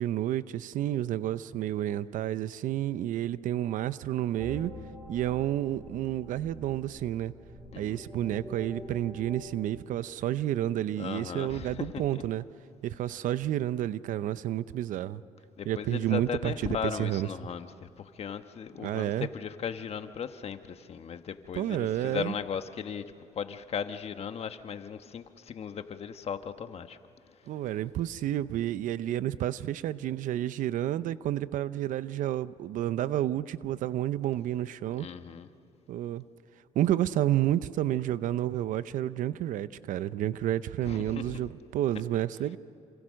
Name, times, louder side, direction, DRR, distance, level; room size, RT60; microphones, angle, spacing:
voice 1, 0.0-4.7 5.1-7.3 7.8-12.4 12.8-15.2 15.7-17.3 18.8-19.3 21.6-22.3 27.5-35.1 35.9-36.2 36.7-42.6, right 12 dB, 75° right, 15 dB, 0.7 m, -30 dB
sound 1, 4.4-9.6, equal, 5° right, 5.0 m, -45 dB
voice 2, 7.7-8.0 11.0-12.2 15.6-27.0 27.3-27.6 35.0-35.5 40.8-41.4, left 7 dB, 50° left, 9 dB, 1.3 m, -37 dB
28.0 x 26.5 x 6.4 m, 2.8 s
cardioid pair, 100°, 14 cm